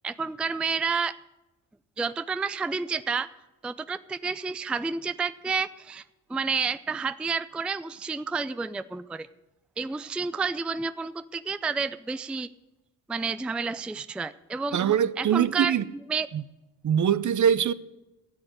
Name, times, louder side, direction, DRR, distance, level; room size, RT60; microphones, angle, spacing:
voice 1, 0.0-1.1 2.0-3.3 3.6-6.0 6.3-9.3 9.8-12.5 13.1-14.8 15.2-15.7 16.1-16.3, right 5 dB, 5° right, 0.4 m, -30 dB
voice 2, 14.7-15.8 16.3-16.4 16.8-17.7, right 8 dB, 45° right, 0.7 m, -23 dB
12.5 x 7.8 x 9.2 m
supercardioid pair, 55°, 42 cm